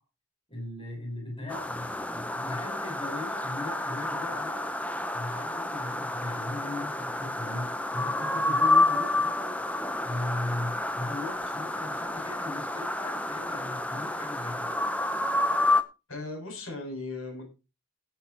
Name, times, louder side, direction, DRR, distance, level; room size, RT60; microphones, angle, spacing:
voice 1, 0.5-4.6 5.1-9.6 10.0-14.7, left 2 dB, 25° left, -1 dB, 4.7 m, -38 dB
sound 1, 1.5-15.8, left 2 dB, 5° left, 0.8 m, -29 dB
voice 2, 16.1-17.5, left 2 dB, 65° left, 2 dB, 7.9 m, -37 dB
17.5 x 6.1 x 4.6 m, 0.29 s
head